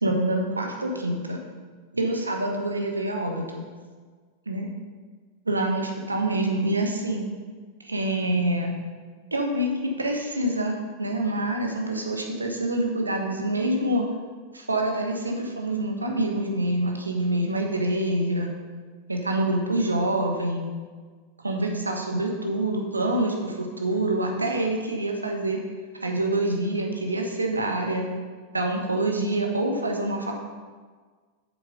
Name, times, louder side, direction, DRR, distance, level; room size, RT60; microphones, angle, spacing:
voice 1, 0.0-1.4 1.9-3.7 4.5-4.7 5.5-7.3 7.8-8.8 9.3-14.1 14.5-18.5 19.1-20.7 21.4-25.6 26.0-28.1 28.5-30.3, right 1 dB, 80° right, 2 dB, 1.2 m, -26 dB
8.0 x 6.8 x 5.1 m, 1.5 s
figure-of-eight pair, 90°, 0 cm